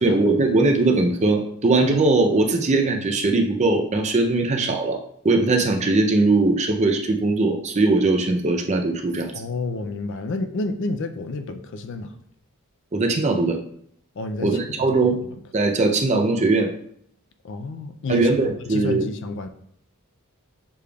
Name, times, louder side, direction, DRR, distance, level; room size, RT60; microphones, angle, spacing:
voice 1, 0.0-5.0 5.2-9.3 12.9-13.6 14.4-15.2 15.5-16.7 18.1-19.1, right 3 dB, 30° right, 4 dB, 0.5 m, -20 dB
voice 2, 9.3-12.1 14.2-14.6 14.9-15.1 17.4-18.3 18.7-19.5, left 3 dB, 55° left, 7 dB, 0.4 m, -30 dB
6.8 x 3.3 x 2.3 m, 0.65 s
head